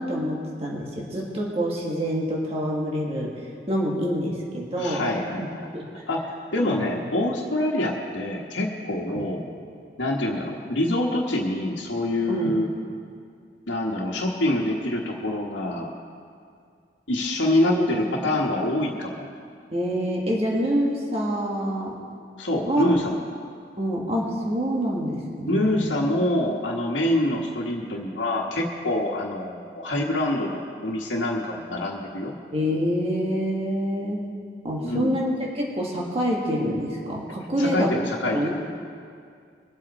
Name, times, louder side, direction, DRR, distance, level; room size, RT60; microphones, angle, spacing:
voice 1, 0.0-5.1 5.4-5.5 5.7-5.9 6.6-6.9 9.1-9.3 12.3-12.6 17.6-18.4 19.7-22.1 22.6-22.9 23.8-25.9 32.5-34.3 34.6-37.9 38.3-38.5, equal, 35° right, -3 dB, 1.7 m, -27 dB
voice 2, 4.8-5.7 6.1-9.4 10.0-12.7 13.7-15.9 17.1-19.3 22.4-23.2 25.5-32.3 34.8-35.2 37.6-38.5, left 1 dB, 90° left, -3 dB, 1.3 m, -25 dB
22.5 x 8.0 x 4.2 m, 2.3 s
head